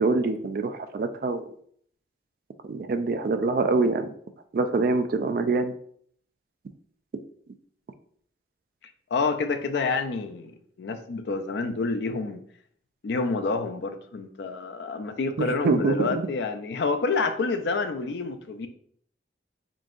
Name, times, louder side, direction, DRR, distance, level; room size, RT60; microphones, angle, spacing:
voice 1, 0.0-1.4 2.6-4.1 4.5-5.7 15.4-16.3, right 3 dB, 50° right, 9 dB, 0.3 m, -25 dB
voice 2, 9.1-12.4 13.0-18.7, left 4 dB, 75° left, 8 dB, 0.4 m, -28 dB
3.8 x 3.7 x 2.5 m, 0.62 s
head